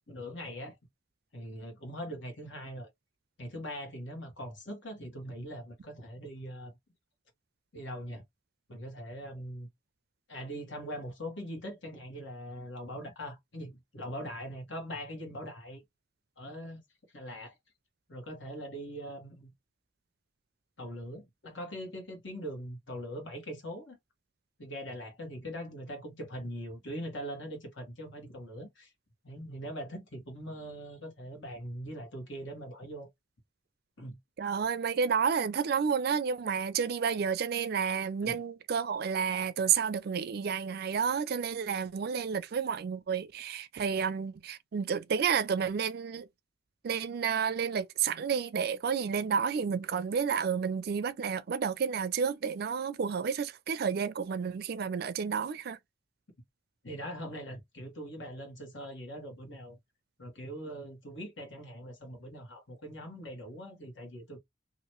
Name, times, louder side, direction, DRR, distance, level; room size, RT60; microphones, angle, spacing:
voice 1, 0.1-0.7 1.3-2.9 3.4-6.7 7.7-8.2 8.7-9.7 10.3-15.8 16.4-16.8 17.1-17.5 18.1-19.5 20.8-24.0 24.6-28.9 29.2-33.1 34.0-34.2 38.2-38.4 56.8-59.8 60.2-64.4, equal, 75° left, 1.5 m, -41 dB
voice 2, 34.4-46.3 46.8-55.8, right 6 dB, 55° right, 0.4 m, -30 dB
2.9 x 2.5 x 2.9 m
head